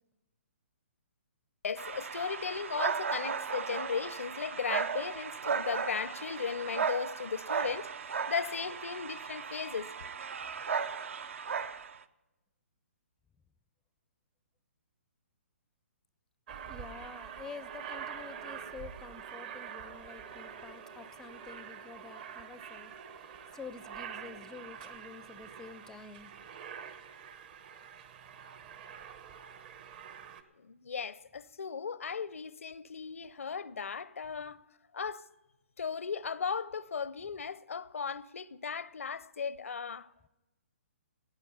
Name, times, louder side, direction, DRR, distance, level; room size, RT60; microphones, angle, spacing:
voice 1, 1.6-7.9 8.3-9.9 30.6-34.6 34.9-35.3 35.8-40.1, left 6 dB, 80° left, 0.5 m, -36 dB
sound 1, 1.8-12.0, right 6 dB, 65° right, 0.6 m, -36 dB
Aircraft, 16.5-30.4, right 7 dB, 45° right, 1.0 m, -46 dB
voice 2, 16.7-26.3, left 5 dB, 5° left, 0.4 m, -49 dB
16.0 x 9.1 x 5.5 m
hypercardioid pair, 135°, 7 cm